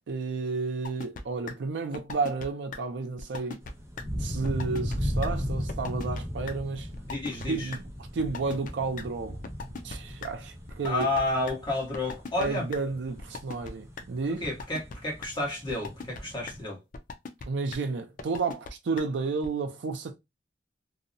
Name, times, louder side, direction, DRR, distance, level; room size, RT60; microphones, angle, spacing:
voice 1, 0.1-3.6 4.2-6.9 7.5-7.8 8.1-9.4 9.8-11.1 12.4-14.4 17.5-20.2, right 4 dB, 80° right, 0.4 m, -31 dB
sound 1, 0.8-1.2 1.5-1.6 1.9-2.5 2.7-2.8 3.2-3.7 4.0-4.1 4.4-5.0 5.2-5.3 5.7-6.2 6.5-6.6 6.9-7.5 7.7-7.8 8.2-8.7 9.0-9.1 9.4-10.3 10.7-11.5 11.9-12.5 12.7-12.8 13.2-13.7 14.0-14.1 14.4-14.9 15.2-15.3 15.7-16.2 16.5-16.6 16.9-17.4 17.7-17.8 18.2-18.7 19.0-19.1 19.4-19.5, left 4 dB, 50° left, 0.4 m, -38 dB
sound 2, 3.6-16.6, equal, 15° right, 0.5 m, -37 dB
voice 2, 7.1-7.7 10.8-12.7 14.4-16.8, left 2 dB, 25° left, 1.1 m, -30 dB
2.7 x 2.0 x 2.5 m
head